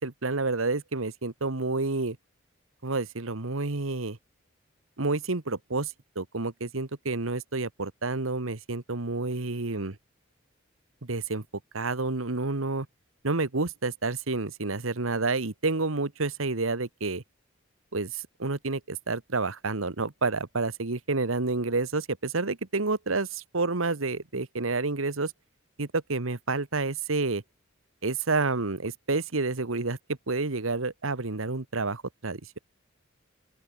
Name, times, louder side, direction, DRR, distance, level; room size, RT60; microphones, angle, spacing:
voice 1, 0.0-2.2 2.8-4.2 5.0-10.0 11.0-11.4 11.7-12.9 13.2-17.2 17.9-25.3 25.8-27.4 28.0-30.0 30.3-32.6, right 3 dB, 90° right, 1.5 m, -29 dB
open air
head